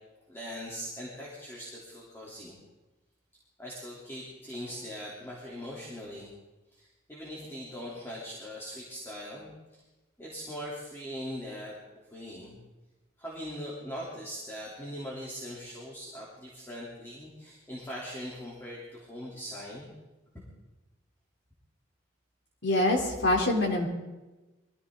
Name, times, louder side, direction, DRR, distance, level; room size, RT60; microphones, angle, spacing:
voice 1, 0.3-2.5 3.6-6.3 6.7-9.8 10.2-11.7 12.1-12.6 13.2-19.9, equal, 15° left, -6 dB, 3.3 m, -41 dB
voice 2, 22.6-23.9, left 1 dB, 65° left, 0 dB, 3.5 m, -25 dB
23.0 x 15.0 x 3.9 m, 1.1 s
head